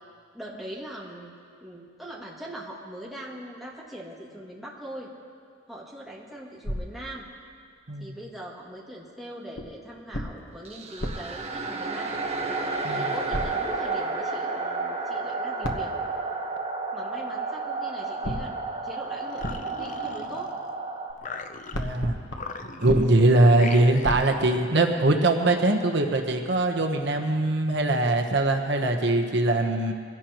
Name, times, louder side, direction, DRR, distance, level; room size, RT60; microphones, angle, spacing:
voice 1, 0.3-1.3 1.6-5.1 5.7-7.3 8.0-12.2 12.9-15.9 16.9-18.6 18.8-20.5, right 1 dB, ahead, -5 dB, 2.3 m, -41 dB
sound 1, 6.6-7.9 9.6-12.5 13.3-14.1 15.6-16.8 18.2-21.1 21.4-25.1, equal, 65° left, 1.2 m, -37 dB
sound 2, 10.6-21.1, right 3 dB, 35° right, 1.4 m, -31 dB
sound 3, 19.2-20.7 21.2-22.0 22.3-23.1 23.5-24.4, left 4 dB, 40° left, 0.7 m, -39 dB
voice 2, 21.7-22.1 22.8-29.9, right 2 dB, 65° right, 4 dB, 1.1 m, -22 dB
24.0 x 16.5 x 3.1 m, 2.2 s
head